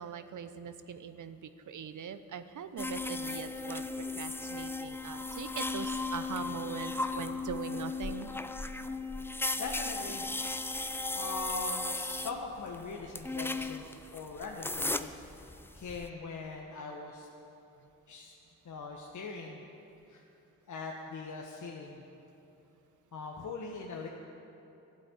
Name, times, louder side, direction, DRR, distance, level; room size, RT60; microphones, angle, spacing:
voice 1, 0.0-8.3, right 7 dB, 45° right, 11 dB, 0.8 m, -42 dB
sound 1, 2.8-16.1, left 3 dB, 5° left, 0.5 m, -36 dB
voice 2, 9.5-10.3 11.2-17.3 18.1-18.3 18.6-19.6 20.1-20.2 20.7-22.0 23.1-24.1, left 3 dB, 45° left, 0 dB, 1.4 m, -41 dB
12.0 x 8.9 x 8.1 m, 2.9 s
hypercardioid pair, 50°, 43 cm